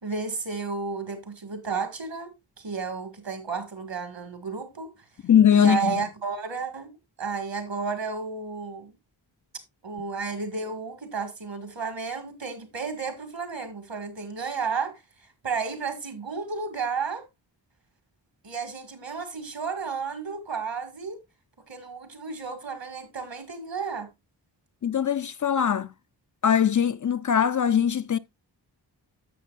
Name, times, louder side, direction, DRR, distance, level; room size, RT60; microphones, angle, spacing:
voice 1, 0.0-5.1 5.5-8.9 9.8-17.3 18.4-21.2 21.7-24.1, right 5 dB, 75° right, 2.0 m, -32 dB
voice 2, 5.2-5.9 24.8-25.9 26.4-28.2, left 9 dB, 45° left, 0.4 m, -21 dB
11.0 x 7.3 x 2.4 m
wide cardioid pair, 55°, 44 cm